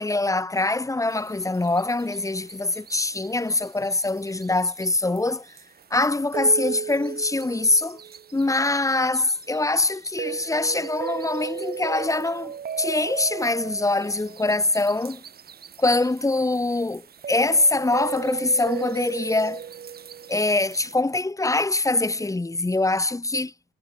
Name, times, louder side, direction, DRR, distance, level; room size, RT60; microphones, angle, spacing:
voice 1, 0.0-5.4 5.9-8.0 8.3-15.2 15.8-19.6 20.3-23.5, left 2 dB, 15° left, 4.6 m, -24 dB
sound 1, 1.1-20.9, right 8 dB, 50° right, 3.2 m, -36 dB
cardioid pair, 90°, 20 cm